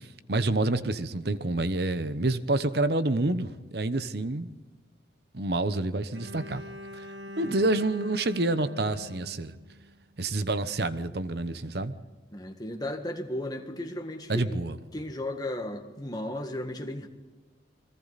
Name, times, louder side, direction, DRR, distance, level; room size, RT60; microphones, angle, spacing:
voice 1, 0.3-4.5 5.3-6.6 7.4-9.5 10.2-12.0 14.3-14.8, right 2 dB, 60° right, 1.0 m, -28 dB
Bowed string instrument, 6.1-10.2, left 1 dB, 75° right, 1.8 m, -44 dB
voice 2, 12.3-14.6 14.9-17.1, left 1 dB, 20° left, 1.8 m, -35 dB
29.5 x 22.0 x 4.2 m
head